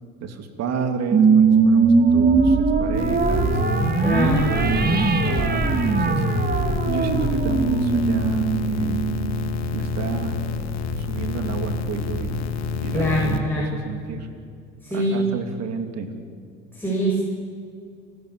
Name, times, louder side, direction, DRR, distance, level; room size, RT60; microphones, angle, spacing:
voice 1, 0.2-3.6 4.2-6.2 6.8-9.0 9.7-10.4 11.0-12.5 12.8-14.3 14.9-16.1, right 5 dB, 60° right, 6 dB, 3.1 m, -30 dB
sound 1, 1.1-9.9, right 4 dB, 30° right, 2.4 m, -20 dB
sound 2, 2.9-13.4, left 4 dB, 65° left, 2.2 m, -28 dB
voice 2, 4.0-4.6 12.9-13.7 14.8-15.2 16.7-17.2, equal, 5° left, -4 dB, 6.7 m, -23 dB
29.5 x 13.5 x 9.7 m, 2.3 s
cardioid pair, 100°, 29 cm